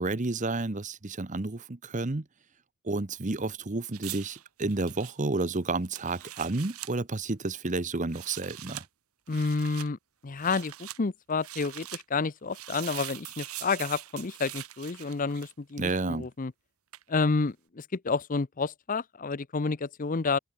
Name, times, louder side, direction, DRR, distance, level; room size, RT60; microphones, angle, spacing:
voice 1, 0.0-2.2 2.8-8.8 15.8-16.3, right 3 dB, 35° right, 0.9 m, -31 dB
sound 1, 3.9-6.9 8.0-8.9 9.3-9.9 10.4-11.0 11.4-12.0 12.5-15.7 16.9-17.1, right 14 dB, 75° right, 1.4 m, -42 dB
voice 2, 9.3-10.0 10.2-16.5 17.1-20.4, left 4 dB, 40° left, 0.6 m, -30 dB
open air
head